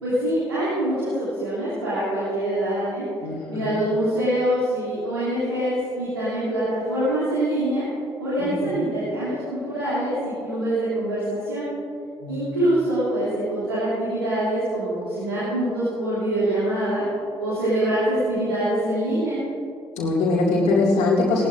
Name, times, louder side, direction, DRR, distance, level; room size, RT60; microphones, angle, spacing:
voice 1, 0.0-3.1 3.5-7.8 8.2-11.6 12.3-17.0 17.4-19.4, right 1 dB, 90° right, -11 dB, 2.8 m, -24 dB
voice 2, 3.2-3.8 8.4-8.8 12.2-12.6 20.0-21.5, left 3 dB, 60° left, -6 dB, 2.3 m, -22 dB
19.5 x 17.5 x 2.6 m, 2.6 s
figure-of-eight pair, 40°, 13 cm